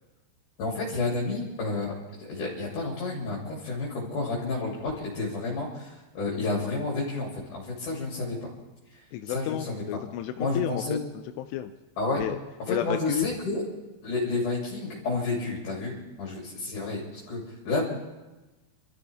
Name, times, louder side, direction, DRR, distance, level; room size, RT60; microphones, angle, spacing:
voice 1, 0.6-1.9 2.2-8.5 9.3-10.0 10.4-11.0 12.0-12.2 12.6-13.6 14.0-17.9, left 3 dB, 50° left, -3 dB, 4.3 m, -30 dB
voice 2, 9.1-11.7 12.2-12.4 12.7-13.3, left 12 dB, 80° left, 6 dB, 2.6 m, -32 dB
27.0 x 14.0 x 3.5 m, 1.1 s
omnidirectional pair, 5.1 m